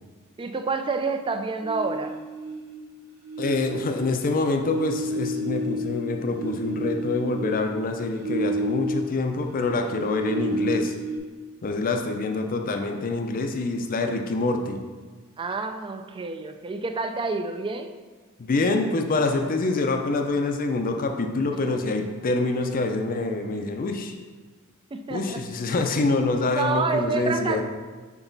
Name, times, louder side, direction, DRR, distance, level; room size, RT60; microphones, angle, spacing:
voice 1, 0.4-2.2 15.4-17.9 21.5-21.8 24.9-25.4 26.5-27.6, right 4 dB, 25° right, 7 dB, 0.3 m, -28 dB
sound 1, 1.6-2.9 3.2-9.3 9.6-11.2, right 1 dB, 75° right, 1.5 m, -31 dB
voice 2, 3.4-10.9 11.6-14.8 18.4-24.1 25.1-27.6, left 3 dB, 40° left, 4 dB, 0.5 m, -26 dB
6.0 x 3.9 x 4.0 m, 1.4 s
head